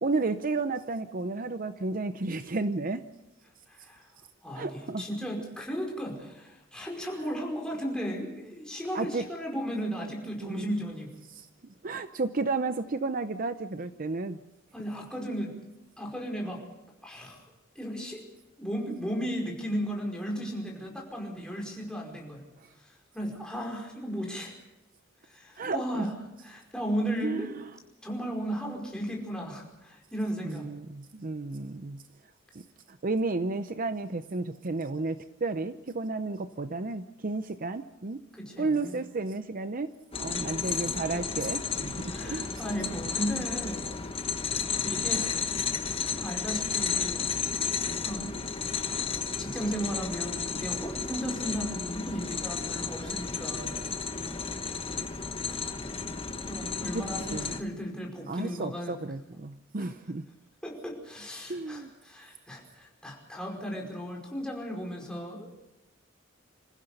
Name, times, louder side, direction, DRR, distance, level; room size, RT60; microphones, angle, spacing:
voice 1, 0.0-3.0 4.5-5.0 8.9-9.2 10.4-10.8 11.3-14.4 15.2-15.4 22.6-22.7 25.6-26.1 27.2-27.7 30.4-32.0 32.5-38.2 38.6-39.9 40.2-42.6 56.9-57.5 58.3-60.3 61.5-61.9, right 3 dB, 45° right, 11 dB, 0.7 m, -32 dB
voice 2, 3.7-4.0 4.4-11.1 14.7-15.5 16.0-16.6 17.0-17.4 17.8-18.2 18.6-22.4 22.8-24.5 25.2-26.1 26.4-27.5 28.0-30.7 38.3-39.0 42.1-43.9 44.8-45.4 45.7-47.2 48.0-48.3 49.4-53.8 55.5-55.6 56.5-58.9 60.6-65.5, equal, 5° left, -1 dB, 5.2 m, -35 dB
sound 1, 40.1-57.6, left 5 dB, 30° left, 1.2 m, -33 dB
26.5 x 15.5 x 6.7 m, 0.92 s
head